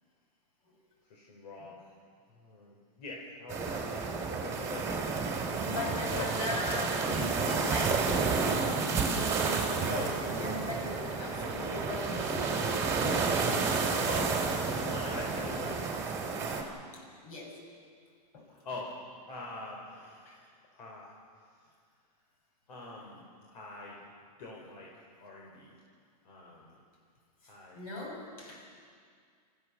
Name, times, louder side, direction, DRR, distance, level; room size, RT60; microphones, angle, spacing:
voice 1, 1.1-1.8 2.3-5.1 6.1-6.3 9.9-10.1 14.0-15.9 18.6-18.9 19.3-21.1 22.7-23.2 23.5-24.0 24.4-25.7 26.2-26.8 27.4-27.8, left 3 dB, 75° left, -3 dB, 4.7 m, -43 dB
sound 1, 3.5-16.6, right 4 dB, 15° right, 2.5 m, -31 dB
voice 2, 5.6-8.1 8.4-12.6 16.9-17.6 18.3-18.5 20.3-20.4 27.4-28.6, left 2 dB, 60° left, 0 dB, 6.9 m, -40 dB
28.0 x 15.5 x 7.0 m, 2.1 s
supercardioid pair, 165°, 21 cm